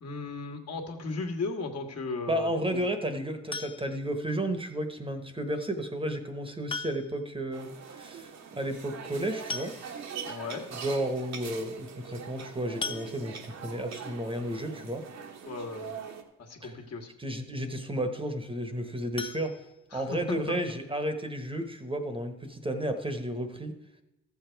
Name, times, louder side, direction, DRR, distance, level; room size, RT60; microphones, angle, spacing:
voice 1, 0.0-2.8 10.2-10.7 15.5-15.9 16.4-17.1 19.9-20.8, left 3 dB, 55° left, 3 dB, 1.6 m, -36 dB
voice 2, 2.3-9.7 10.7-15.0 16.6-16.7 17.2-19.5 19.9-23.8, right 1 dB, 15° right, 7 dB, 1.1 m, -32 dB
sound 1, 3.5-4.1 5.6-5.7 6.7-7.3 7.6-7.7 8.0-8.1 9.1-9.2 9.5-10.2 10.8-10.9 11.2-11.4 12.8-13.6 19.1-20.3 20.7-20.8 21.2-21.3 21.7-21.8, left 4 dB, 20° left, 0.3 m, -39 dB
sound 2, 7.5-16.2, right 6 dB, 60° right, 1.2 m, -42 dB
13.5 x 7.1 x 4.5 m, 0.97 s
cardioid pair, 90°, 30 cm